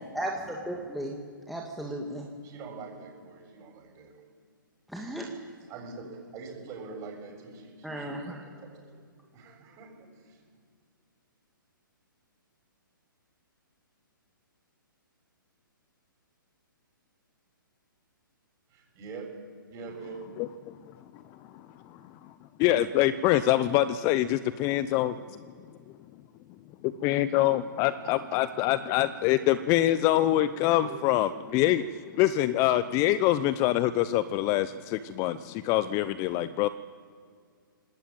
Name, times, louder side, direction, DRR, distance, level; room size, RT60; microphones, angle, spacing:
voice 1, 0.1-1.2 1.5-2.3 4.9-5.3 7.8-8.4, right 1 dB, ahead, -2 dB, 2.4 m, -35 dB
voice 2, 2.4-4.2 5.7-8.7 9.3-10.4 18.7-19.3 19.7-20.2 27.1-27.4 28.6-28.7 30.8-30.9 31.5-31.6, right 4 dB, 25° right, 2 dB, 7.4 m, -44 dB
voice 3, 20.4-20.8 21.5-22.3 22.6-25.4 26.8-31.8 32.1-36.7, left 14 dB, 25° left, 15 dB, 0.7 m, -25 dB
26.0 x 20.0 x 9.1 m, 2.1 s
figure-of-eight pair, 130°, 11 cm